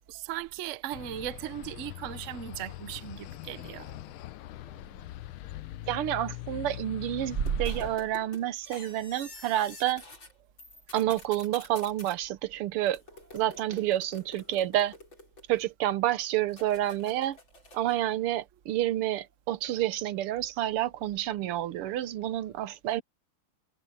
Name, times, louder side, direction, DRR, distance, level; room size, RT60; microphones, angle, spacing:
voice 1, 0.1-3.9 5.5-5.6 7.5-7.6, right 10 dB, 55° right, 0.8 m, -37 dB
sound 1, 0.9-8.0, left 15 dB, 80° left, 1.5 m, -42 dB
voice 2, 5.9-10.0 10.9-13.0 13.3-14.9 15.5-17.4 17.7-23.0, right 13 dB, 85° right, 1.8 m, -29 dB
sound 2, 7.5-10.3 10.6-12.2 12.9-15.8 16.5-18.0, left 3 dB, 60° left, 7.4 m, -49 dB
omnidirectional pair, 2.4 m